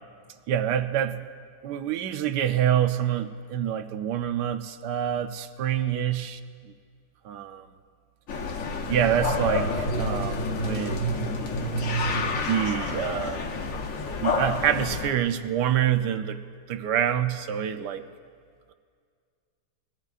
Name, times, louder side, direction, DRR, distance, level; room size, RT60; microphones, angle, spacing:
voice 1, 0.5-1.2 1.6-6.4 7.2-7.7 8.9-11.1 12.5-13.5 14.2-16.4 16.7-18.1, right 10 dB, 70° right, 9 dB, 1.1 m, -26 dB
sound 1, 8.3-15.1, left 2 dB, 50° left, 1.1 m, -28 dB
22.5 x 16.5 x 2.4 m, 2.1 s
omnidirectional pair, 2.2 m